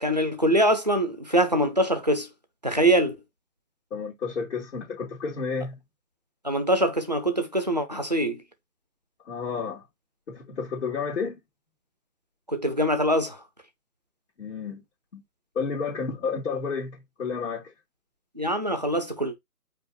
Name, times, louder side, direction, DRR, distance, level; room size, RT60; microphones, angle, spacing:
voice 1, 0.0-2.3 2.6-3.2 6.4-8.4 12.5-13.4 18.4-19.4, right 1 dB, 30° right, 0.4 m, -23 dB
voice 2, 3.9-5.8 9.3-9.8 10.3-11.4 14.4-14.8 15.1-15.2 15.6-17.7, left 5 dB, 50° left, 2.1 m, -31 dB
5.1 x 2.4 x 3.7 m
figure-of-eight pair, 155°, 47 cm